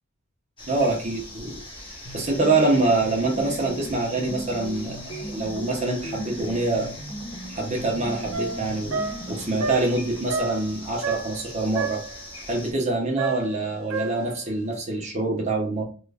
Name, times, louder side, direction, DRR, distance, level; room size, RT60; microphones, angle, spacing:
sound 1, 0.6-12.7, left 1 dB, 25° left, 0.9 m, -41 dB
voice 1, 0.7-1.6 2.1-6.9 7.5-12.0 12.5-15.8, right 2 dB, 35° right, 0 dB, 0.7 m, -25 dB
sound 2, 2.0-9.7, right 1 dB, 60° left, 0.9 m, -37 dB
sound 3, 8.3-11.5 11.8-12.2 13.2-14.4, right 3 dB, 90° right, 0.5 m, -31 dB
3.0 x 2.4 x 3.3 m, 0.38 s
head